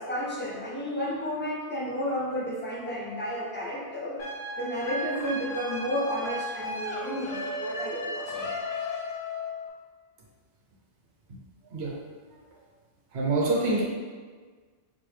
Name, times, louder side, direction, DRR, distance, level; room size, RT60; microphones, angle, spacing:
voice 1, 0.0-4.2 4.6-8.6, equal, 15° left, -5 dB, 0.4 m, -32 dB
sound 1, 4.2-9.7, left 1 dB, 60° left, 0.7 m, -35 dB
voice 2, 13.1-13.8, right 2 dB, 70° right, -3 dB, 1.0 m, -25 dB
4.4 x 2.1 x 3.2 m, 1.5 s
omnidirectional pair, 1.2 m